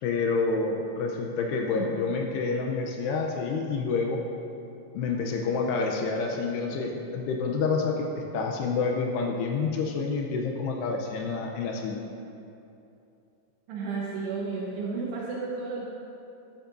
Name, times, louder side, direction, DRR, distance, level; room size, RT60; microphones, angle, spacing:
voice 1, 0.0-4.2 4.9-12.0, left 4 dB, 80° left, 1 dB, 2.6 m, -28 dB
voice 2, 13.7-15.8, right 4 dB, 75° right, -4 dB, 2.9 m, -32 dB
13.5 x 12.0 x 2.6 m, 2.7 s
omnidirectional pair, 5.2 m